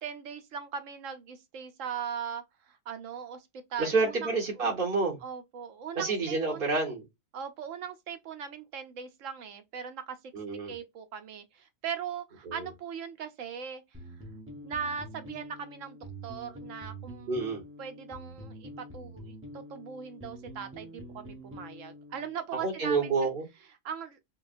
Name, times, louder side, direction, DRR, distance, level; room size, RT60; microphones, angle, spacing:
voice 1, 0.0-2.4 2.9-3.4 3.7-4.3 4.6-4.7 5.2-6.6 7.3-10.2 10.7-13.8 14.6-16.0 16.2-17.4 17.8-23.1 23.8-24.2, right 7 dB, 65° right, 0.9 m, -39 dB
voice 2, 3.8-5.2 5.9-7.0 10.3-10.7 12.4-12.7 17.3-17.6 22.5-23.4, right 4 dB, 40° right, 1.5 m, -28 dB
sound 1, 13.9-22.4, equal, 10° right, 0.7 m, -46 dB
5.6 x 2.3 x 2.5 m
omnidirectional pair, 1.5 m